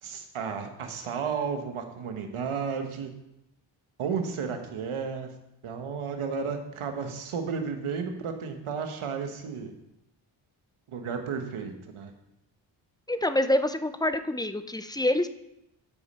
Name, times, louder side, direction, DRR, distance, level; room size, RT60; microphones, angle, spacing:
voice 1, 0.0-3.1 4.0-5.3 5.6-9.7 10.9-12.1, right 6 dB, 85° right, 6 dB, 1.2 m, -33 dB
voice 2, 13.1-15.3, left 1 dB, 10° left, 10 dB, 0.6 m, -26 dB
13.5 x 5.3 x 4.2 m, 0.84 s
cardioid pair, 55°, 49 cm